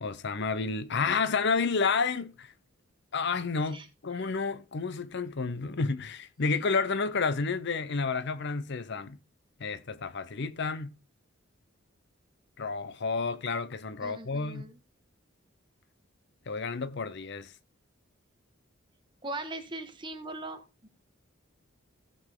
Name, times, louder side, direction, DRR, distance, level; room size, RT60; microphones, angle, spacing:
voice 1, 0.0-2.5 3.1-9.2 9.6-10.9 12.6-14.6 16.5-17.5, left 4 dB, 60° left, 0.7 m, -30 dB
voice 2, 4.1-4.5 14.0-14.8 19.2-20.9, right 2 dB, 25° right, 1.4 m, -40 dB
15.5 x 5.5 x 3.6 m
head